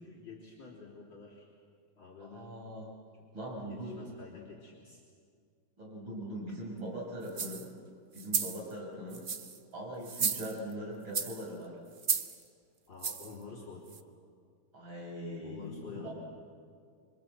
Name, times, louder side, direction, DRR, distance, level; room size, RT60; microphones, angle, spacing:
voice 1, 0.0-1.5 2.0-2.6 3.6-5.0 6.5-6.6 12.9-13.9 15.4-16.1, left 4 dB, 55° left, -5 dB, 4.2 m, -49 dB
voice 2, 2.2-2.8 3.3-4.0 5.8-7.7 8.1-9.2 9.7-11.8 14.7-16.1, equal, 60° right, -3 dB, 7.2 m, -41 dB
sound 1, 7.3-7.7 8.2-8.6 9.1-9.6 10.0-10.7 11.1-11.4 12.0-12.4 13.0-13.3 13.9-14.0, right 5 dB, 85° right, 0.4 m, -33 dB
26.0 x 25.0 x 7.8 m, 2.2 s
omnidirectional pair, 2.4 m